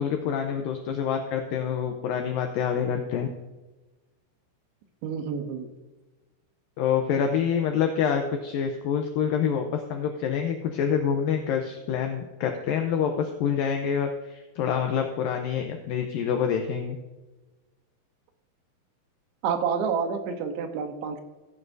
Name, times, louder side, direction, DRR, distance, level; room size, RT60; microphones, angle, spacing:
voice 1, 0.0-3.3 6.8-17.0, left 7 dB, 90° left, 4 dB, 2.0 m, -27 dB
voice 2, 5.0-5.7 19.4-21.2, right 6 dB, 85° right, 6 dB, 3.2 m, -28 dB
15.5 x 9.6 x 2.6 m, 1.2 s
omnidirectional pair, 4.9 m